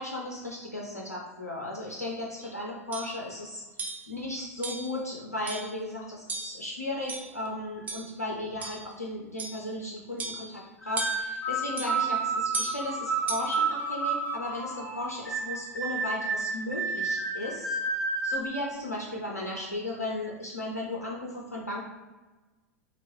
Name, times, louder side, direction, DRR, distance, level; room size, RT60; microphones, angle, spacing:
voice 1, 0.0-3.6 4.1-17.8 18.2-21.8, left 1 dB, 85° left, -3 dB, 0.4 m, -35 dB
sound 1, 2.4-2.5 2.9-3.2 3.8-4.1 4.6-4.9 5.5-5.8 6.3-6.6 7.1-7.5 7.9-8.1 8.6-8.9 9.4-9.7 10.2-10.6 11.0-11.4 11.8-12.0 12.5-12.8 13.3-13.6, right 3 dB, 20° right, 0.4 m, -35 dB
sound 2, 10.8-18.4, right 3 dB, 15° left, 1.1 m, -31 dB
2.9 x 2.4 x 3.0 m, 1.2 s
figure-of-eight pair, 90°, 8 cm